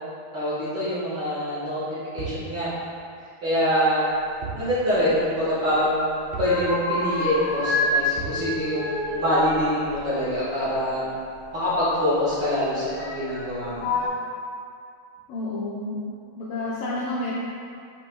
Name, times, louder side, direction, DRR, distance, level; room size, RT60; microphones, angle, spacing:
voice 1, 0.3-1.8 2.1-2.7 3.4-4.0 4.5-11.0 11.5-13.9, equal, 60° right, -12 dB, 1.1 m, -25 dB
sound 1, 2.2-2.5 4.4-4.7 5.0-5.1 6.3-6.6 8.2-8.5, right 5 dB, 80° right, 1.7 m, -34 dB
sound 2, 4.9-5.8 6.1-7.9 8.2-10.7 11.8-11.9 12.8-13.4 13.7-14.1, left 2 dB, 55° left, 2.6 m, -29 dB
voice 2, 15.3-16.0 16.4-17.3, left 2 dB, 80° left, -7 dB, 1.9 m, -29 dB
7.8 x 5.6 x 2.3 m, 2.3 s
omnidirectional pair, 4.6 m